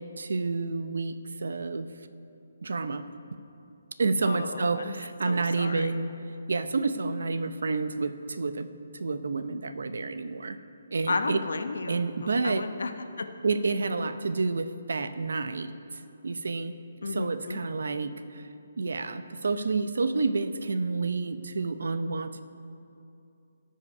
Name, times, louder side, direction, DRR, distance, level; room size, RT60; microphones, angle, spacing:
voice 1, 0.0-1.9 2.6-3.0 4.0-6.1 6.5-8.7 8.9-10.6 10.9-11.4 11.9-12.7 13.4-16.7 17.1-18.5 18.8-22.4, right 3 dB, 75° right, 11 dB, 0.6 m, -29 dB
voice 2, 4.2-4.9 5.2-5.9 11.1-13.3 14.0-14.1 17.0-17.6, left 3 dB, 80° left, 8 dB, 0.9 m, -33 dB
17.0 x 5.6 x 5.4 m, 2.6 s
hypercardioid pair, 170°, 0 cm